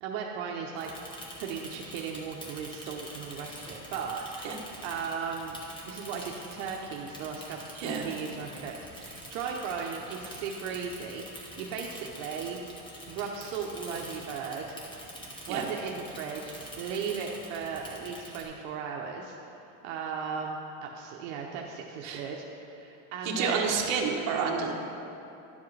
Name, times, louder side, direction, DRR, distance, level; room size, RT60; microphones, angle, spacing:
voice 1, 0.0-0.9 1.4-5.5 5.9-7.6 8.0-12.6 13.1-14.8 15.5-23.7, right 6 dB, 70° right, 0 dB, 0.8 m, -37 dB
Bicycle / Mechanisms, 0.8-18.4, equal, 10° left, 0.9 m, -46 dB
voice 2, 7.8-8.1 15.5-15.6 22.0-22.2 23.2-24.7, right 5 dB, 45° right, 0 dB, 1.1 m, -29 dB
11.5 x 7.3 x 3.2 m, 2.9 s
cardioid pair, 165°, 39 cm